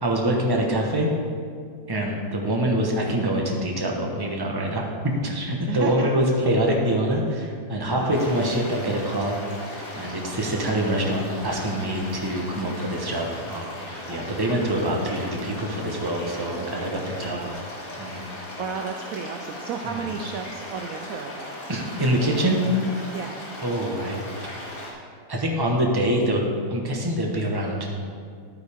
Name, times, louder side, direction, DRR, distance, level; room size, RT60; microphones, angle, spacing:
voice 1, 0.0-1.1 1.9-4.9 5.2-9.4 9.9-17.4 18.0-18.2 19.9-20.0 21.7-22.6 23.6-24.2 25.3-26.4 26.7-27.9, right 1 dB, 15° right, 0 dB, 0.9 m, -25 dB
voice 2, 5.7-6.1 7.9-8.4 17.2-17.7 18.6-21.5 23.1-23.4, right 6 dB, 75° right, 4 dB, 0.7 m, -33 dB
sound 1, 8.1-24.9, left 1 dB, 50° left, 2.5 m, -38 dB
12.0 x 9.2 x 3.5 m, 2.2 s
omnidirectional pair, 2.0 m